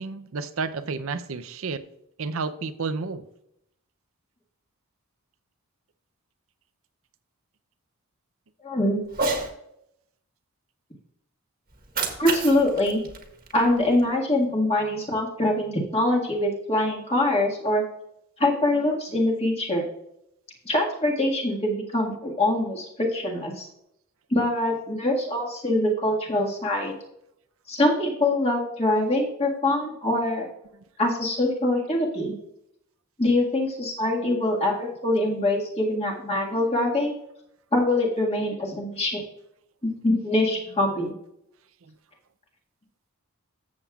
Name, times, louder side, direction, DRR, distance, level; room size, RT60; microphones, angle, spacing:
voice 1, 0.0-1.8 2.2-3.2, right 4 dB, 65° right, 12 dB, 0.6 m, -31 dB
voice 2, 8.6-9.0 12.2-13.0 13.5-17.8 18.4-19.8 20.6-23.7 24.3-26.9 27.7-30.5 31.0-32.3 33.2-37.1 37.7-39.2 39.8-41.1, left 1 dB, 25° left, -1 dB, 1.8 m, -24 dB
Cat, 9.1-9.5 11.7-14.1, right 3 dB, 40° right, 1.4 m, -31 dB
13.5 x 7.4 x 2.4 m, 0.79 s
head